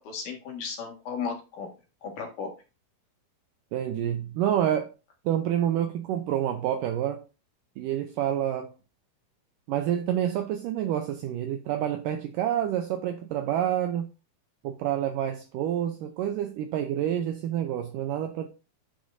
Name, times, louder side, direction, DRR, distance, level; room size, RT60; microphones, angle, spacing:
voice 1, 0.0-1.7 2.0-2.5, left 6 dB, 60° left, 3.0 m, -35 dB
voice 2, 3.7-4.9 5.3-7.2 7.8-8.7 9.7-14.1 14.6-18.5, right 10 dB, 80° right, 1.9 m, -28 dB
9.8 x 6.1 x 2.6 m
omnidirectional pair, 4.5 m